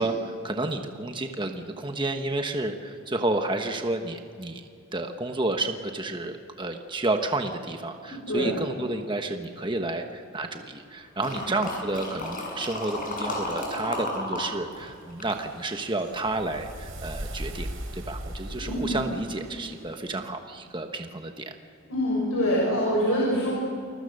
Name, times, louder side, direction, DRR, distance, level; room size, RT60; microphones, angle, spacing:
voice 1, 0.0-4.6 4.9-17.7 17.9-21.4, right 2 dB, 20° right, 5 dB, 1.2 m, -30 dB
voice 2, 8.0-8.6 11.3-11.5 18.5-19.0 21.9-23.5, equal, 80° left, -4 dB, 6.7 m, -25 dB
sound 1, 11.2-14.5 14.7-16.2 16.7-16.8, left 1 dB, 40° left, 7.8 m, -33 dB
sound 2, 14.7-20.0, equal, 80° right, 4.4 m, -39 dB
29.0 x 21.5 x 6.6 m, 2.3 s
head